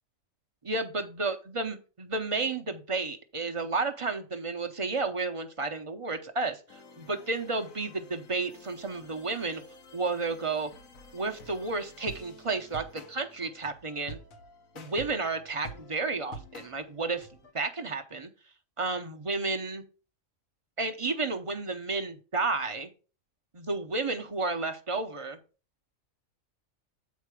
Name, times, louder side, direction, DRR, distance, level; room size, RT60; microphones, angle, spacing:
voice 1, 0.6-9.6 9.9-10.7 11.1-14.2 14.7-17.3 17.5-18.3 18.8-19.8 20.8-22.9 23.5-25.4, right 3 dB, 30° right, 5 dB, 0.7 m, -32 dB
sound 1, 6.7-17.5, left 1 dB, 80° left, 1.5 m, -49 dB
8.4 x 4.7 x 4.8 m, 0.35 s
omnidirectional pair, 1.4 m